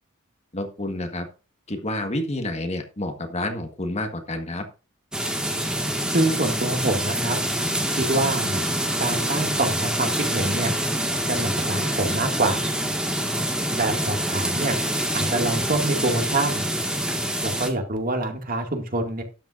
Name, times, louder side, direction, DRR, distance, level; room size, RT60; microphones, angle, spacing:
voice 1, 0.5-1.3 1.7-4.6, left 1 dB, 30° left, 6 dB, 1.6 m, -29 dB
sound 1, 5.1-17.7, right 1 dB, 5° right, 1.8 m, -26 dB
voice 2, 6.1-7.4 7.9-8.6 9.0-10.7 11.3-12.6 13.7-14.8 15.1-16.7 17.4-19.2, right 2 dB, 45° right, 4 dB, 2.2 m, -25 dB
12.5 x 9.3 x 2.6 m, 0.33 s
head